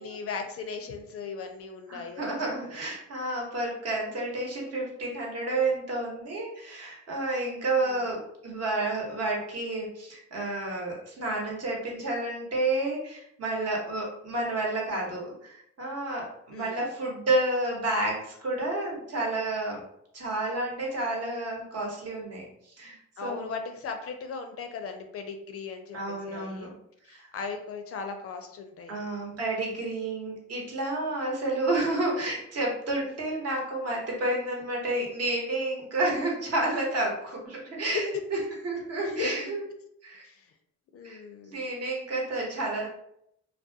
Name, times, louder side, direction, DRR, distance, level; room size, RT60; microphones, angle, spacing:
voice 1, 0.0-2.4 2.6-2.8 7.7-8.1 16.5-16.8 23.2-26.7 27.0-29.0 37.9-38.0 39.0-39.5 40.2-40.5 40.9-41.7, left 5 dB, 50° left, 6 dB, 0.4 m, -37 dB
voice 2, 1.9-19.8 20.1-23.5 25.9-26.7 27.1-27.3 28.9-38.1 38.6-39.6 40.0-40.2 41.0-41.2 41.5-42.9, right 2 dB, 55° right, -2 dB, 0.9 m, -30 dB
2.3 x 2.1 x 2.6 m, 0.75 s
cardioid pair, 90°, 30 cm